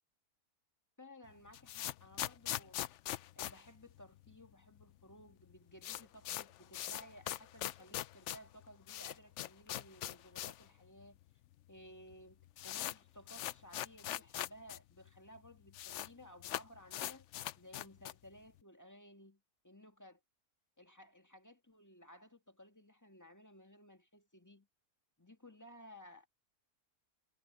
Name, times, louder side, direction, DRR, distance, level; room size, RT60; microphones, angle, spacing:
voice 1, 1.0-2.9 3.4-11.2 11.7-20.2 20.8-24.7 25.2-26.3, left 1 dB, 10° left, 1.8 m, -57 dB
sound 1, 1.3-4.5 4.8-4.9 5.1-5.2 5.5-10.7 11.0-11.1 11.8-11.9 12.1-14.8 15.1-15.2 15.4-16.1 16.4-18.3, left 13 dB, 65° left, 0.7 m, -42 dB
omnidirectional pair, 1.6 m